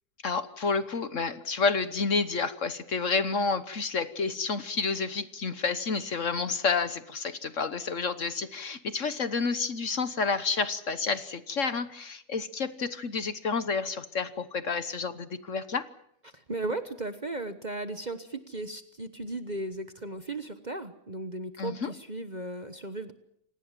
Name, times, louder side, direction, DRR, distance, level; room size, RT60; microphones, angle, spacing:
voice 1, 0.2-15.9 21.6-21.9, left 4 dB, 50° left, 13 dB, 1.4 m, -30 dB
voice 2, 16.2-23.1, right 2 dB, 30° right, 10 dB, 1.1 m, -36 dB
27.5 x 19.0 x 7.6 m, 0.72 s
omnidirectional pair, 1.8 m